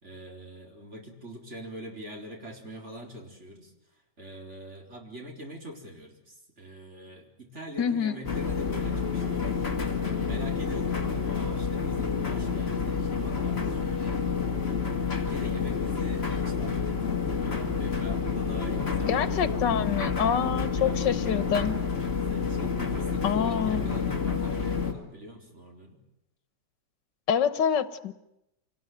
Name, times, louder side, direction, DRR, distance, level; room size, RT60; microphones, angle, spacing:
voice 1, 0.0-14.8 15.1-19.7 20.3-21.4 22.3-26.0, right 1 dB, 40° right, 1 dB, 4.4 m, -44 dB
voice 2, 7.8-8.2 19.1-21.8 23.2-23.9 27.3-28.1, left 8 dB, 85° left, 14 dB, 1.9 m, -26 dB
sound 1, 8.2-24.9, left 5 dB, 35° left, 2.7 m, -29 dB
26.5 x 19.5 x 9.3 m, 0.87 s
omnidirectional pair, 1.8 m